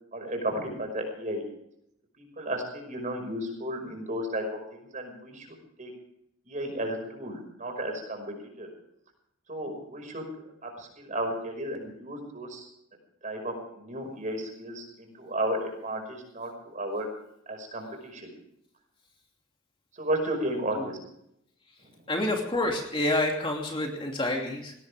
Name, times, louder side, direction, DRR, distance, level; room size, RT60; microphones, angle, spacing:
voice 1, 0.1-1.4 2.2-4.5 4.7-5.5 5.8-5.9 6.5-8.7 9.5-12.7 13.2-17.1 17.5-18.3 19.9-21.0, right 1 dB, 35° right, 4 dB, 5.5 m, -33 dB
voice 2, 22.1-24.7, left 1 dB, 25° left, 1 dB, 2.7 m, -28 dB
21.0 x 18.0 x 3.5 m, 0.75 s
head